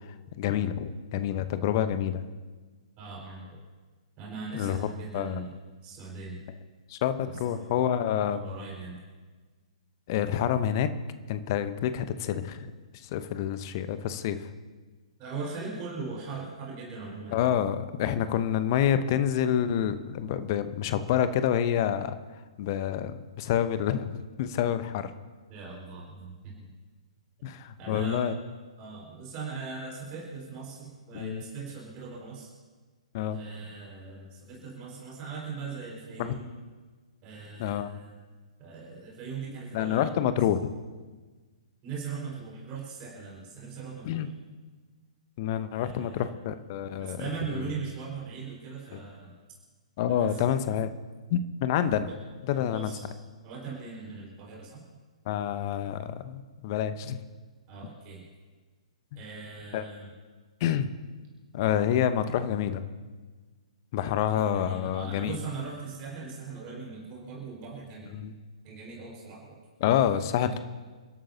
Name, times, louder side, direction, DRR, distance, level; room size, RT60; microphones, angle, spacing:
voice 1, 0.4-2.2 4.5-4.9 5.1-5.5 6.9-8.4 10.1-10.9 11.3-12.7 13.0-14.5 17.3-22.2 22.6-25.1 27.4-28.3 31.1-31.4 33.1-33.4 36.2-36.3 37.6-37.9 39.7-40.7 44.0-44.3 45.4-47.2 47.5-47.6 48.9-49.0 50.0-50.9 51.3-52.1 52.5-52.9 55.3-57.2 59.1-59.2 59.7-59.8 60.6-60.9 61.5-62.8 63.9-65.4 68.1-68.3 69.8-70.6, left 10 dB, 35° left, 11 dB, 0.9 m, -28 dB
voice 2, 3.0-3.6 4.2-5.5 5.8-6.4 7.4-7.6 8.2-9.0 15.2-17.5 25.5-26.7 27.8-28.3 28.8-32.5 33.3-36.5 37.2-38.1 38.6-40.2 41.8-44.3 45.8-46.3 47.0-49.4 50.1-50.5 52.0-52.2 52.5-53.1 53.4-54.8 57.7-58.2 59.2-60.1 64.1-68.1 68.6-69.6 70.3-70.5, right 4 dB, 25° right, -4 dB, 4.9 m, -40 dB
29.0 x 12.5 x 2.8 m, 1.4 s
figure-of-eight pair, 120°, 4 cm